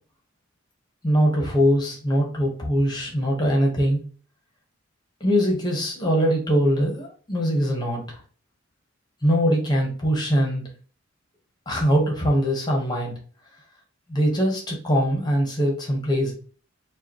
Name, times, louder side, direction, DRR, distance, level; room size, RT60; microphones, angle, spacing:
voice 1, 1.0-4.0 5.2-8.2 9.2-10.6 11.7-13.1 14.1-16.3, equal, 20° left, -1 dB, 1.2 m, -22 dB
4.8 x 2.5 x 3.0 m, 0.40 s
head